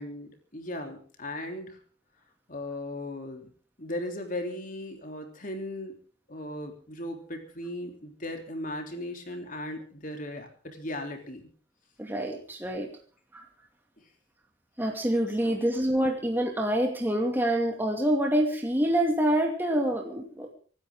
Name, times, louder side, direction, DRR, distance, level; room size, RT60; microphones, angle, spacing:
voice 1, 0.0-1.8 2.5-3.5 3.8-5.9 6.3-11.5 14.0-14.1 15.4-15.6, left 1 dB, 45° left, 4 dB, 3.5 m, -37 dB
voice 2, 12.0-12.9 13.3-13.4 14.8-20.5, right 1 dB, 10° right, 2 dB, 2.5 m, -26 dB
25.0 x 12.5 x 3.8 m, 0.43 s
head